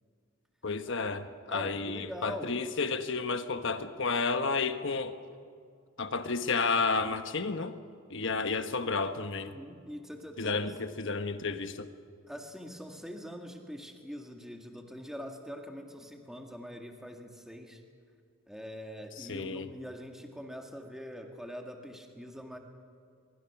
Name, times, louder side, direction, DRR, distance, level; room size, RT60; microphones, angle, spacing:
voice 1, 0.6-5.2 6.0-7.7 8.1-9.5 10.4-11.9 19.2-19.7, left 4 dB, 60° left, 8 dB, 1.2 m, -31 dB
voice 2, 1.5-2.6 9.4-10.7 12.3-17.8 18.5-22.6, equal, ahead, 2 dB, 1.9 m, -43 dB
23.5 x 23.0 x 6.0 m, 2.3 s
head